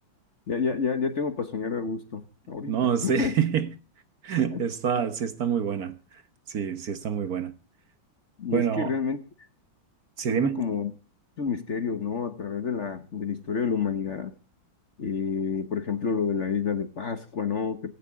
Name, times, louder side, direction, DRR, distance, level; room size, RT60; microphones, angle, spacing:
voice 1, 0.5-3.3 4.5-4.6 8.4-9.2 10.3-10.9 11.4-14.3 15.0-17.9, left 6 dB, 45° left, 1.2 m, -29 dB
voice 2, 2.7-3.7 4.2-6.2 6.5-7.5 8.5-8.9 10.2-10.6, right 8 dB, 55° right, 1.4 m, -27 dB
17.0 x 16.5 x 3.6 m
omnidirectional pair, 2.1 m